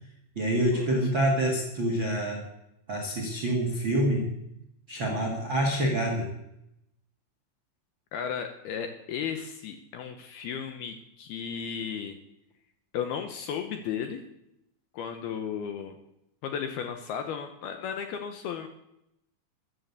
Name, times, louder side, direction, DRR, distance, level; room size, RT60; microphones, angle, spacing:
voice 1, 0.3-2.5 2.9-4.3 4.9-6.3, right 1 dB, 55° right, 2 dB, 1.3 m, -27 dB
voice 2, 8.1-12.2 12.9-14.2 14.9-16.0 16.4-18.7, left 7 dB, 75° left, 6 dB, 2.5 m, -34 dB
14.0 x 10.5 x 8.2 m, 0.82 s
omnidirectional pair, 5.5 m